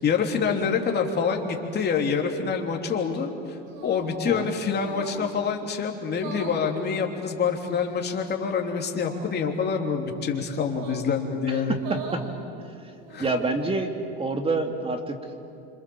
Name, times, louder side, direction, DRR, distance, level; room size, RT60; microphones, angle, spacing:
voice 1, 0.0-3.3 3.8-11.8 13.1-13.2, left 6 dB, 30° left, 2 dB, 3.2 m, -26 dB
sound 1, 3.7-4.2 4.8-5.3 6.1-6.6 7.6-8.1 9.0-9.3 10.7-11.1 11.7-12.3 12.9-13.5, right 5 dB, 55° right, 5.0 m, -40 dB
voice 2, 11.5-11.8 13.2-13.9 14.2-15.2, right 3 dB, 15° right, 5 dB, 2.5 m, -27 dB
26.5 x 26.5 x 7.2 m, 2.5 s
supercardioid pair, 120°, 32 cm